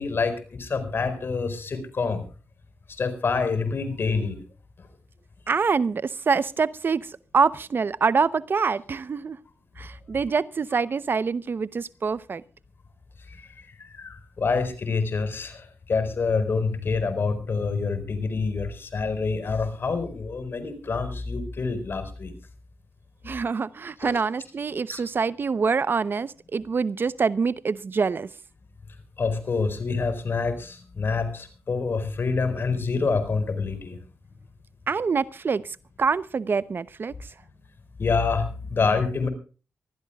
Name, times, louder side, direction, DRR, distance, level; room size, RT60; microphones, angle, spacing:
voice 1, 0.0-2.2 3.0-4.4 13.7-22.3 24.0-24.1 24.9-25.0 29.2-34.0 38.0-39.3, left 4 dB, 55° left, 4.6 m, -27 dB
voice 2, 5.5-9.4 9.8-12.4 23.2-28.3 34.9-37.3, right 5 dB, 50° right, 0.8 m, -25 dB
24.5 x 15.5 x 2.3 m
cardioid pair, 70°, 5 cm